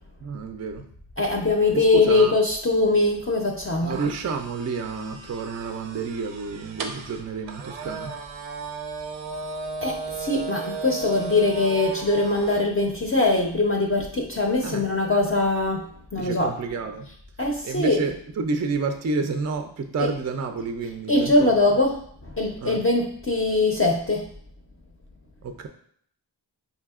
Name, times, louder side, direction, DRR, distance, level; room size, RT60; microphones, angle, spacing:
voice 1, 0.2-0.9 1.7-2.4 3.8-8.1 14.6-14.8 16.1-17.1 17.6-21.5 22.6-22.8 25.4-25.7, right 4 dB, 40° right, 6 dB, 0.4 m, -30 dB
voice 2, 1.2-4.0 9.8-16.5 17.4-18.0 20.0-20.1 21.1-22.0 22.2-24.3, left 2 dB, 30° left, 0 dB, 0.5 m, -22 dB
sound 1, 3.9-12.6, right 4 dB, 85° right, 0.6 m, -35 dB
4.7 x 2.7 x 2.3 m, 0.62 s
cardioid pair, 50°, 45 cm